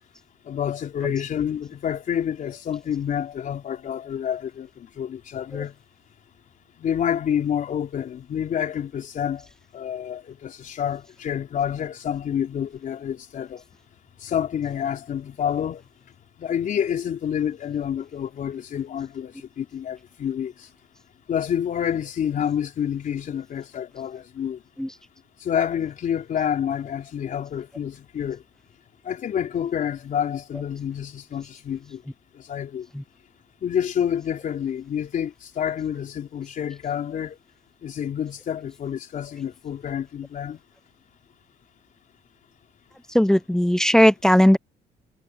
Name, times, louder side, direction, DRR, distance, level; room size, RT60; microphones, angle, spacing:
voice 1, 0.4-5.7 6.8-9.5 9.7-13.6 14.2-15.8 16.4-20.7 21.3-24.6 25.4-28.4 29.0-32.0 32.3-32.9 33.6-37.4 37.8-40.6, left 9 dB, 50° left, 4.1 m, -28 dB
voice 2, 43.1-44.6, equal, 5° left, 0.5 m, -17 dB
cardioid pair, 110°, 17 cm